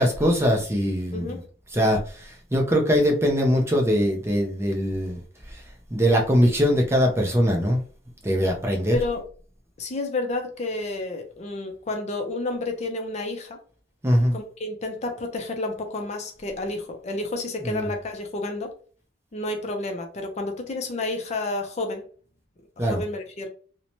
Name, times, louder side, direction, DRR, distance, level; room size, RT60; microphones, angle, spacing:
voice 1, 0.0-1.4 1.7-5.2 5.9-7.8 8.2-9.0 14.0-14.4 17.6-17.9 22.8-23.0, equal, 15° right, 0.5 m, -22 dB
voice 2, 1.1-1.4 8.9-9.3 9.8-13.6 14.3-18.7 19.3-22.0 22.8-23.5, left 2 dB, 35° left, 0.5 m, -30 dB
2.7 x 2.1 x 2.9 m
head